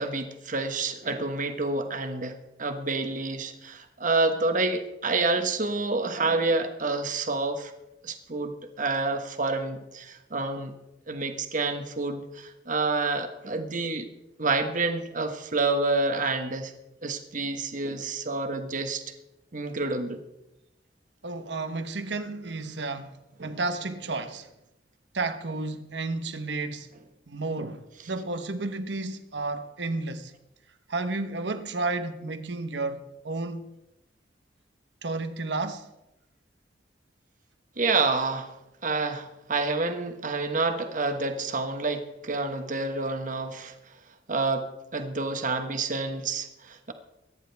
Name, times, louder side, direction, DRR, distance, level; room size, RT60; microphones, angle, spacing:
voice 1, 0.0-7.7 8.0-10.7 11.1-14.1 14.4-16.7 17.0-19.0 19.5-20.2 37.8-38.5 38.8-43.7 44.3-46.9, right 3 dB, 45° right, 1.3 m, -28 dB
voice 2, 21.2-23.1 23.4-24.5 25.1-26.9 27.3-30.3 30.9-33.7 35.0-35.9, right 3 dB, 70° right, 1.1 m, -32 dB
24.0 x 10.0 x 3.5 m
head